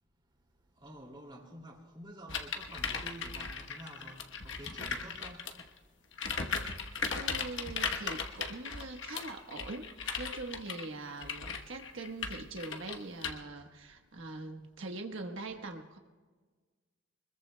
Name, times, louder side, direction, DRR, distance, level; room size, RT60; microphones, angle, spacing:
voice 1, 0.8-5.4, right 1 dB, 25° right, 0 dB, 2.5 m, -49 dB
sound 1, 2.3-5.7 6.1-13.3, left 5 dB, 70° left, 1.1 m, -37 dB
voice 2, 7.1-9.9 10.2-16.0, right 2 dB, 85° right, 3 dB, 1.2 m, -42 dB
24.5 x 21.0 x 2.2 m, 1.4 s
head